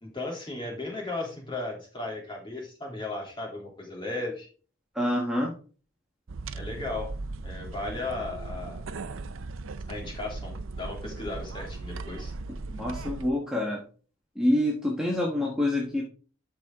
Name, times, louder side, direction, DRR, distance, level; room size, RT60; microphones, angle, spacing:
voice 1, 0.0-4.5 6.5-7.1 7.4-8.8 9.9-12.3, left 2 dB, 25° left, 0 dB, 3.0 m, -35 dB
voice 2, 4.9-5.5 12.7-13.8 14.3-16.0, left 1 dB, 5° right, -3 dB, 1.4 m, -26 dB
sound 1, 6.3-13.3, right 3 dB, 75° right, 0.6 m, -38 dB
12.5 x 4.9 x 3.7 m, 0.39 s
head